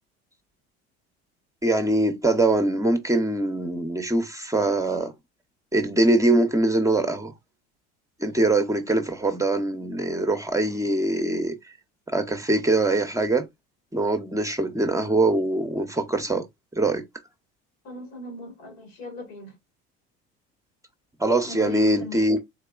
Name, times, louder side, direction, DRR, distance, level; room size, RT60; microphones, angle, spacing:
voice 1, 1.6-5.1 5.7-7.3 8.2-11.5 12.1-13.5 13.9-16.4 16.8-17.0 21.2-22.4, right 2 dB, 10° right, 0.6 m, -23 dB
voice 2, 17.8-19.6 21.4-22.3, left 2 dB, 90° left, 1.7 m, -38 dB
3.7 x 3.0 x 2.3 m
supercardioid pair, 85°, 30 cm